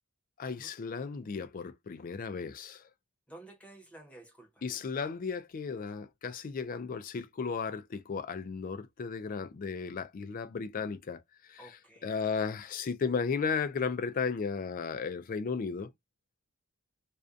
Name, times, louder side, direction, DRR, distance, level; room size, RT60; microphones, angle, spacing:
voice 1, 0.4-2.9 4.6-15.9, left 5 dB, 40° left, 0.3 m, -35 dB
voice 2, 3.3-4.6 11.6-12.1, right 1 dB, 5° left, 0.8 m, -52 dB
2.5 x 2.2 x 2.5 m
head